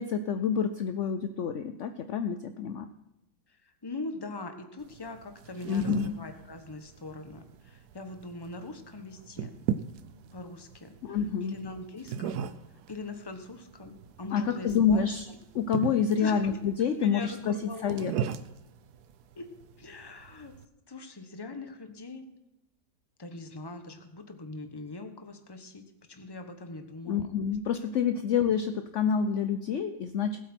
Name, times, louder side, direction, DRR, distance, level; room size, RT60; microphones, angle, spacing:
voice 1, 0.0-2.9 5.7-6.1 11.0-11.6 14.3-15.2 15.5-17.6 17.8-18.1 27.1-30.4, left 7 dB, 60° left, 9 dB, 0.9 m, -28 dB
voice 2, 3.6-9.6 10.3-12.5 12.9-15.1 16.2-16.5 17.0-18.1 19.4-19.5 19.8-20.5 20.9-22.2 23.2-27.4, left 2 dB, 15° left, 6 dB, 1.1 m, -42 dB
sound 1, 4.8-20.7, right 8 dB, 80° right, 1.2 m, -39 dB
19.0 x 8.4 x 4.4 m, 0.92 s
omnidirectional pair, 1.7 m